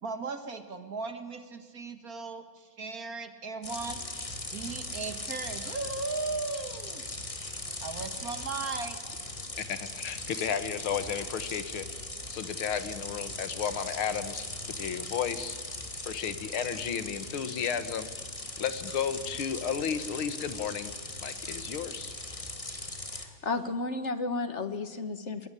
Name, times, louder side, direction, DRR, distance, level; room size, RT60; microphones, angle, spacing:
voice 1, 0.0-4.0 4.5-7.0 7.8-9.0, right 4 dB, 45° right, 9 dB, 1.9 m, -37 dB
sound 1, 3.6-23.3, left 2 dB, 15° left, 2.0 m, -39 dB
voice 2, 9.6-11.9 12.3-15.6 16.1-18.1 18.6-22.1, left 7 dB, 85° left, 12 dB, 2.2 m, -33 dB
voice 3, 23.1-25.5, left 3 dB, 40° left, 10 dB, 1.5 m, -33 dB
22.0 x 22.0 x 9.8 m, 1.4 s
omnidirectional pair, 2.2 m